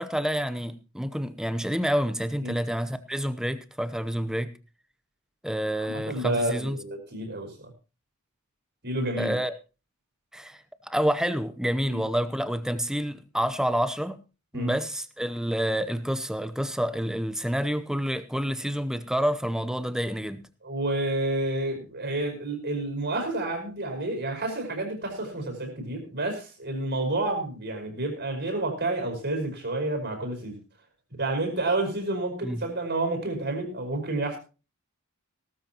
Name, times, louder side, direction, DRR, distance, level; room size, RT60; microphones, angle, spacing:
voice 1, 0.0-4.5 5.4-6.8 9.2-9.5 10.3-10.6 10.8-14.2 14.5-20.4 32.4-32.6, equal, 5° right, 0.8 m, -28 dB
voice 2, 5.7-7.7 8.8-9.4 11.9-12.0 14.5-14.7 20.6-30.6 31.2-34.4, right 2 dB, 50° right, 5.1 m, -30 dB
17.5 x 13.5 x 3.0 m
head